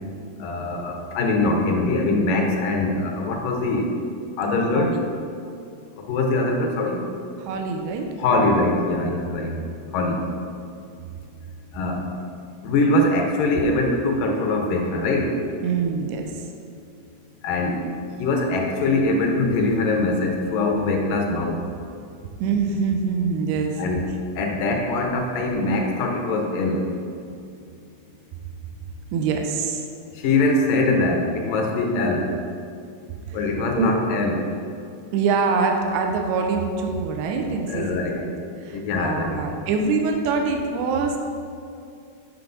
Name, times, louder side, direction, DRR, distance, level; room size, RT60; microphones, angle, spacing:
voice 1, 0.4-3.9 4.4-5.0 6.0-7.0 8.2-9.5 9.9-10.2 11.7-12.0 12.6-15.3 17.4-17.8 18.2-21.6 23.8-24.0 24.4-26.9 30.2-32.3 33.3-34.4 37.7-38.2 38.7-39.4, left 2 dB, 75° left, 1 dB, 2.1 m, -22 dB
voice 2, 7.4-8.1 8.4-8.5 9.5-9.6 15.6-16.4 22.4-23.8 29.1-29.9 33.3-33.4 33.7-33.9 35.1-41.2, right 4 dB, 85° right, 3 dB, 2.7 m, -24 dB
9.1 x 6.1 x 3.9 m, 2.4 s
omnidirectional pair, 4.6 m